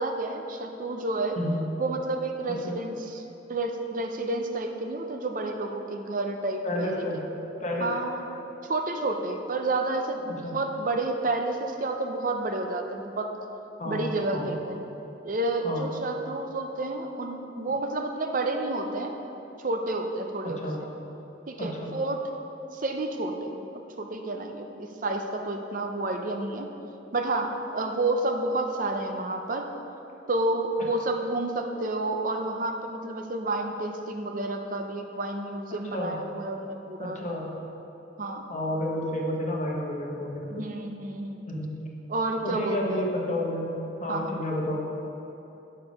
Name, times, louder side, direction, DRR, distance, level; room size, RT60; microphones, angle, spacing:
voice 1, 0.0-1.4 1.8-3.2 3.5-7.2 7.8-8.2 8.6-13.3 13.9-14.8 15.2-19.1 19.6-20.6 21.5-22.2 22.7-23.7 24.0-26.7 27.1-29.7 30.3-37.2 38.2-38.4 40.5-41.4 42.1-43.0 44.1-44.3, right 2 dB, 45° right, 4 dB, 0.6 m, -30 dB
voice 2, 6.6-7.2 7.6-7.9 10.3-10.6 13.8-14.6 15.6-15.9 20.4-20.8 21.6-21.9 35.9-36.2 37.0-37.5 38.5-40.6 41.5-41.7 42.4-43.7 44.0-44.8, left 1 dB, 35° left, -1 dB, 1.1 m, -31 dB
6.8 x 6.5 x 5.2 m, 3.0 s
head